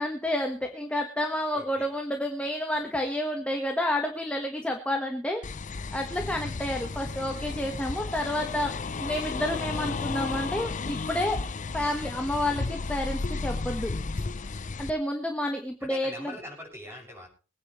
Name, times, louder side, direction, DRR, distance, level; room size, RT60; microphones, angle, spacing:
voice 1, 0.0-5.4 5.9-8.7 9.0-11.4 11.7-13.9 14.8-16.3, left 1 dB, 5° left, 2 dB, 1.4 m, -30 dB
voice 2, 1.5-1.9 15.8-17.3, left 1 dB, 15° right, 0 dB, 6.4 m, -42 dB
sound 1, 5.4-14.9, left 4 dB, 40° left, 0.6 m, -33 dB
23.5 x 9.7 x 3.2 m, 0.35 s
head